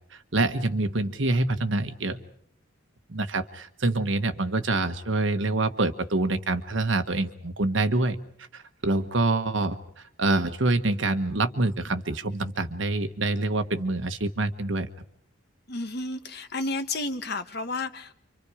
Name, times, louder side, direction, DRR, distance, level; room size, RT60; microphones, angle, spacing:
voice 1, 0.1-2.2 3.1-8.2 8.5-9.8 10.2-14.9, right 2 dB, 70° right, 9 dB, 1.3 m, -26 dB
voice 2, 15.7-18.1, left 2 dB, 55° left, 9 dB, 1.2 m, -31 dB
29.0 x 25.5 x 5.0 m, 0.65 s
head